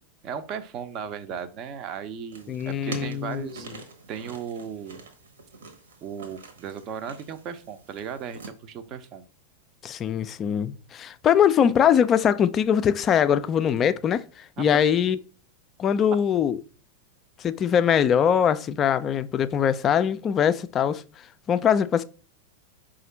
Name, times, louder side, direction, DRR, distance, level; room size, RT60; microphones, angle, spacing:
voice 1, 0.2-3.8 4.1-5.1 6.0-9.3 14.6-14.9, right 7 dB, 35° right, 0.5 m, -36 dB
sound 1, 2.3-8.5, right 4 dB, 65° right, 1.0 m, -44 dB
voice 2, 2.5-3.5 9.8-15.2 15.8-16.6 17.4-21.0 21.5-22.0, left 8 dB, 25° left, 0.3 m, -22 dB
4.8 x 2.5 x 4.2 m
figure-of-eight pair, 90°, 0 cm